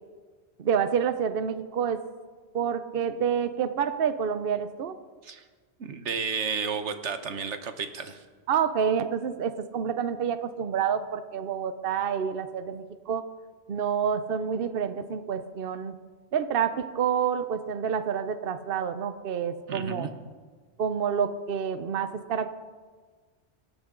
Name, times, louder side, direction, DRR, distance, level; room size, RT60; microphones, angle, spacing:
voice 1, 0.6-2.0 2.5-4.9 8.5-13.2 13.7-15.9 16.3-20.1 20.8-22.5, right 7 dB, 60° right, 11 dB, 0.9 m, -28 dB
voice 2, 5.8-8.2 19.7-20.1, right 5 dB, 85° right, 9 dB, 1.4 m, -32 dB
25.5 x 13.0 x 3.8 m, 1.5 s
omnidirectional pair, 1.2 m